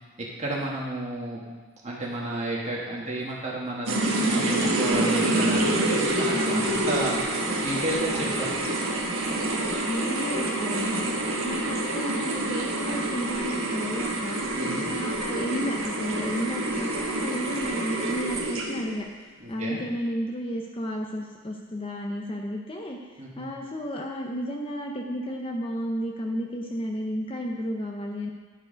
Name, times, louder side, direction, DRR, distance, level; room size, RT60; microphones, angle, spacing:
voice 1, 0.2-1.4 1.8-7.2 7.6-8.5 14.5-14.9 19.4-19.8 23.2-23.5, right 1 dB, 30° right, -4 dB, 1.6 m, -32 dB
sound 1, 3.9-18.9, right 1 dB, 75° right, 1.2 m, -27 dB
voice 2, 6.3-7.0 9.8-11.2 11.4-14.5 14.9-19.1 19.5-28.3, equal, 25° left, 1 dB, 0.6 m, -32 dB
11.0 x 4.6 x 5.1 m, 1.5 s
head